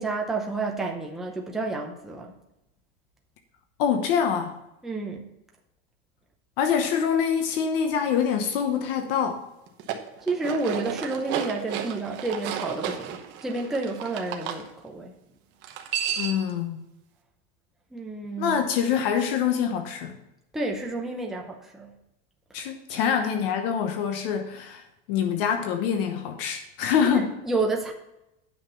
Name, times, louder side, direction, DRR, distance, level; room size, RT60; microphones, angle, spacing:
voice 1, 0.0-2.3 4.8-5.2 10.3-15.1 17.9-18.6 20.5-21.9 22.6-22.7 27.1-27.9, right 3 dB, ahead, 0 dB, 0.6 m, -30 dB
voice 2, 3.8-4.5 6.6-9.4 16.2-16.8 18.4-20.2 22.5-24.8 25.1-27.4, left 7 dB, 65° left, 6 dB, 1.1 m, -25 dB
sound 1, 9.7-14.6 15.6-16.5, right 9 dB, 35° right, 1.0 m, -33 dB
9.5 x 5.8 x 5.5 m, 0.90 s
cardioid pair, 180°, 30 cm